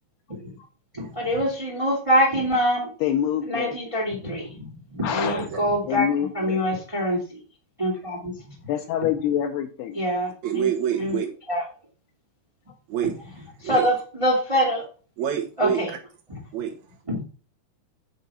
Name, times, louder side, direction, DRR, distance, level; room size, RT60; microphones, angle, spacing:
voice 1, 0.9-2.9 3.5-6.1 6.3-7.2 7.8-8.3 9.9-10.7 11.0-11.2 11.5-11.6 13.0-13.1 13.6-14.8 15.6-15.9 17.1-17.2, equal, 30° right, 0.5 m, -24 dB
voice 2, 3.0-3.8 5.0-5.5 5.9-6.6 8.7-10.0, left 10 dB, 75° left, 2.6 m, -26 dB
voice 3, 5.2-5.6 10.1-11.3 12.9-13.1 13.6-13.9 15.2-15.8 16.5-16.7, right 9 dB, 85° right, 1.6 m, -27 dB
9.8 x 4.6 x 5.5 m
omnidirectional pair, 5.2 m